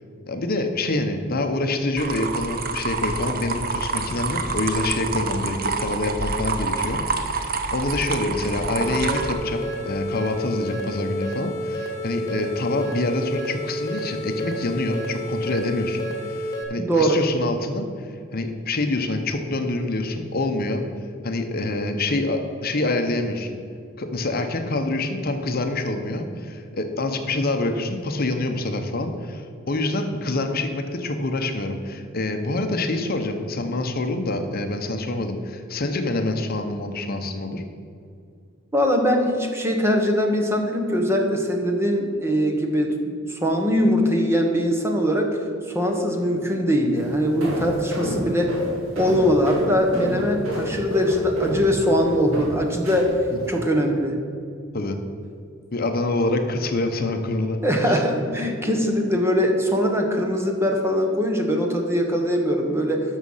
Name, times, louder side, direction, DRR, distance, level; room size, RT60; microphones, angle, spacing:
voice 1, 0.3-20.8 21.2-23.5 24.0-37.6 53.3-53.4 54.7-55.0 55.7-57.6 57.9-58.0, left 2 dB, 45° left, 5 dB, 0.8 m, -26 dB
sound 1, 2.0-9.3, right 4 dB, 45° right, 0.8 m, -27 dB
sound 2, 8.7-16.6, equal, 20° left, 1.6 m, -30 dB
voice 2, 16.8-17.2 38.7-42.9 43.3-45.3 45.7-48.6 48.9-53.2 53.5-54.1 57.6-63.0, equal, 10° right, 2 dB, 1.2 m, -21 dB
sound 3, 46.9-53.6, equal, 75° right, 2.5 m, -30 dB
12.5 x 6.4 x 5.6 m, 2.4 s
head